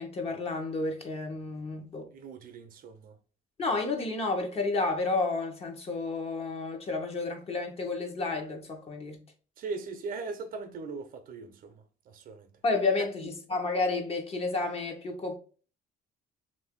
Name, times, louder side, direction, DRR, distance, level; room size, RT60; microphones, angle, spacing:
voice 1, 0.0-2.1 3.6-9.2 12.6-15.4, left 3 dB, 35° left, 0.9 m, -31 dB
voice 2, 2.1-3.2 9.6-12.5 13.2-13.3, right 4 dB, 60° right, 0.6 m, -40 dB
2.9 x 2.6 x 3.5 m
cardioid pair, 110°, 17 cm